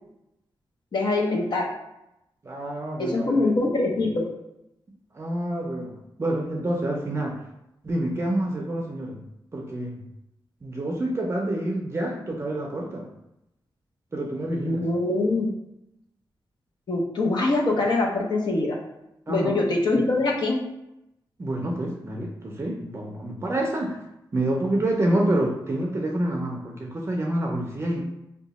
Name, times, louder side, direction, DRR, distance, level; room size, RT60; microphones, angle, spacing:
voice 1, 0.9-1.6 3.0-4.3 14.5-15.5 16.9-18.8 19.3-20.6, left 2 dB, 65° left, 0 dB, 0.7 m, -23 dB
voice 2, 2.4-3.5 5.1-7.4 7.8-9.2 9.5-10.0 10.6-13.1 14.1-14.9 19.3-19.6 19.9-20.1 21.4-24.0 24.3-28.0, right 1 dB, 30° right, 0 dB, 0.5 m, -28 dB
2.8 x 2.2 x 4.0 m, 0.86 s
wide cardioid pair, 90°, 8 cm